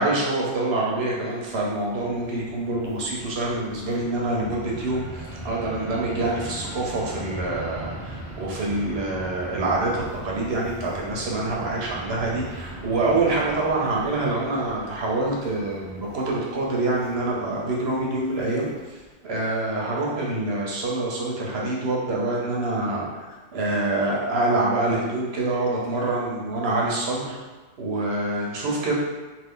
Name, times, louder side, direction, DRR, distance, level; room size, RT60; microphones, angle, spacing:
voice 1, 0.0-18.7 19.2-23.3 23.5-27.4 27.8-28.9, right 2 dB, 75° right, -3 dB, 1.0 m, -26 dB
Fixed-wing aircraft airplane, 1.3-19.1, right 1 dB, 20° left, 0.8 m, -40 dB
2.7 x 2.5 x 3.6 m, 1.2 s
omnidirectional pair, 1.1 m